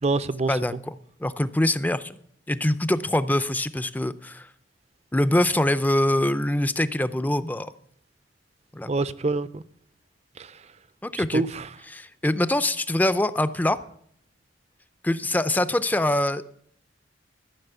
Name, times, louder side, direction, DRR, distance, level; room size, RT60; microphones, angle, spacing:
voice 1, 0.0-0.5 8.9-9.6 10.4-10.6 11.2-11.7, right 3 dB, 35° right, 17 dB, 0.5 m, -26 dB
voice 2, 1.2-2.2 2.5-4.5 5.1-7.7 8.7-8.9 11.0-11.4 11.9-13.8 15.0-16.4, left 1 dB, 10° left, 13 dB, 0.5 m, -24 dB
13.5 x 6.2 x 8.0 m, 0.66 s
head